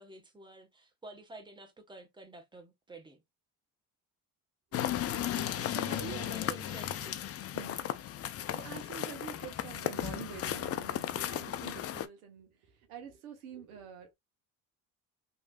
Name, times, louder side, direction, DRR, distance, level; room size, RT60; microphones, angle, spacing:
voice 1, 0.0-3.2 5.9-7.3, right 3 dB, 10° right, 1.2 m, -50 dB
sound 1, 4.7-12.1, left 11 dB, 35° left, 0.4 m, -35 dB
voice 2, 4.9-6.3 7.5-7.9 8.5-14.1, right 7 dB, 90° right, 0.9 m, -47 dB
3.1 x 2.7 x 2.2 m
hypercardioid pair, 65°, 41 cm